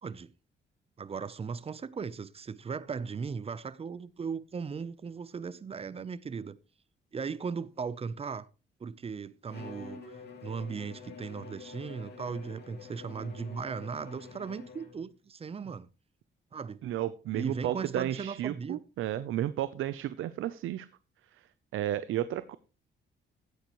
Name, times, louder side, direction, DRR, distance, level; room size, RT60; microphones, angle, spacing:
voice 1, 0.0-0.3 1.0-6.6 7.1-8.5 8.8-10.0 10.4-15.9 16.5-16.8 17.3-18.8, right 5 dB, 30° right, 0.7 m, -37 dB
Bowed string instrument, 9.5-15.1, left 5 dB, 55° left, 3.0 m, -47 dB
voice 2, 16.8-20.9 21.7-22.6, right 12 dB, 90° right, 0.7 m, -32 dB
16.0 x 9.5 x 3.1 m
cardioid pair, 125°, 20 cm